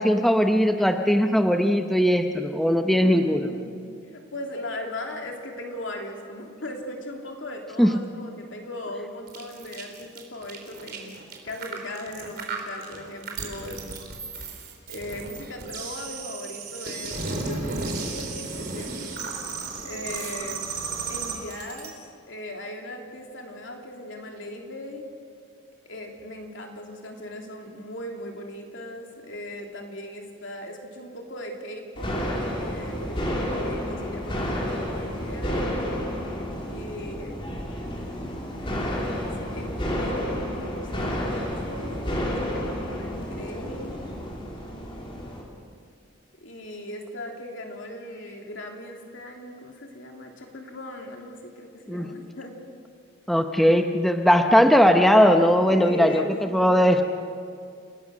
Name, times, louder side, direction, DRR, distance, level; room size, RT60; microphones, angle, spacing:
voice 1, 0.0-3.5 7.8-7.9 51.9-52.1 53.3-56.2 56.5-57.0, equal, ahead, 5 dB, 0.8 m, -19 dB
voice 2, 3.0-3.7 4.1-11.1 11.4-14.0 14.9-19.2 19.8-20.7 21.1-21.9 22.3-25.0 25.8-35.8 36.7-37.6 38.7-44.0 46.4-52.6 55.7-57.0, left 1 dB, 75° left, 1 dB, 3.0 m, -38 dB
sound 1, 9.3-21.9, right 4 dB, 50° right, 3.6 m, -34 dB
sound 2, 32.0-45.4, equal, 25° left, 3.2 m, -30 dB
29.5 x 18.0 x 6.4 m, 2.2 s
head